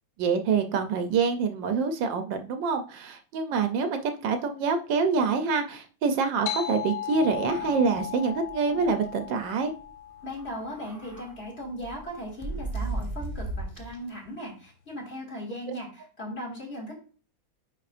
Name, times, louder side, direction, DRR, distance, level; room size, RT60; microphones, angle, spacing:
voice 1, 0.2-9.7, right 5 dB, 75° right, 7 dB, 1.4 m, -26 dB
sound 1, 6.5-11.4, left 10 dB, 70° left, 0.9 m, -37 dB
sound 2, 7.1-8.1 8.5-8.6 8.9-9.1 10.3-11.3 11.8-14.1, right 2 dB, 15° right, 0.8 m, -36 dB
voice 2, 10.2-16.9, equal, 35° left, -3 dB, 2.7 m, -38 dB
9.8 x 4.0 x 2.5 m, 0.39 s
omnidirectional pair, 2.1 m